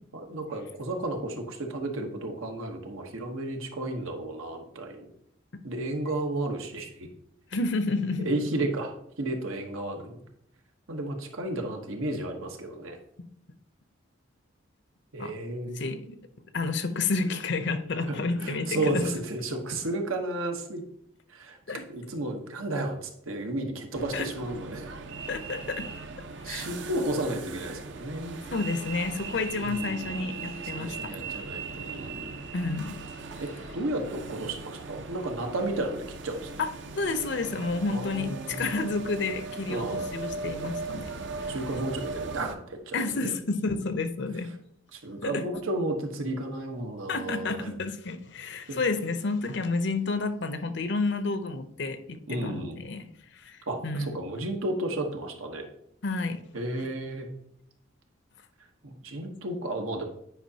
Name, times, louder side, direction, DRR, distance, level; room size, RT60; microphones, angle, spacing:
voice 1, 0.1-5.1 5.6-7.1 8.2-8.9 9.2-10.2 10.9-13.0 15.1-15.8 18.1-20.8 21.3-21.6 21.9-25.0 26.4-28.4 29.7-32.4 33.4-36.5 37.9-38.7 39.7-40.0 41.5-43.3 44.9-47.7 48.7-48.8 52.3-52.8 53.7-55.7 56.5-57.3 58.8-60.0, right 1 dB, 90° right, 3 dB, 1.1 m, -33 dB
voice 2, 7.5-8.3 15.2-15.3 15.7-16.2 16.5-19.2 21.7-21.8 24.1-24.3 25.3-25.9 26.5-26.7 28.5-31.0 32.5-32.9 36.6-36.7 36.9-41.0 41.4-41.6 42.9-44.5 45.2-45.4 47.1-53.0 53.3-54.1 56.0-56.4, left 3 dB, 55° left, 9 dB, 0.6 m, -30 dB
sound 1, 23.9-42.6, right 4 dB, 60° right, 0.6 m, -39 dB
9.2 x 5.0 x 2.8 m, 0.70 s
head